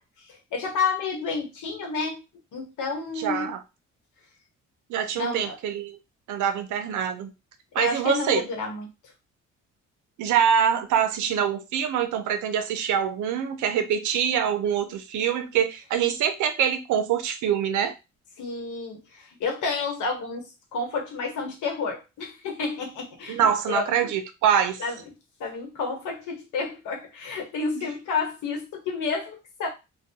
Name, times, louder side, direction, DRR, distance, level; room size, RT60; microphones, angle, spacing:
voice 1, 0.2-2.2 2.5-3.5 5.2-5.6 7.7-8.9 18.4-20.5 20.7-23.4 23.7-24.1 24.8-25.0 25.4-29.7, left 4 dB, 75° left, 2 dB, 1.0 m, -30 dB
voice 2, 3.2-3.6 4.9-6.0 6.3-7.3 7.7-8.4 10.2-17.9 23.3-24.8 27.8-27.9, right 8 dB, 80° right, 7 dB, 0.6 m, -24 dB
2.2 x 2.2 x 2.7 m, 0.25 s
cardioid pair, 90°, 30 cm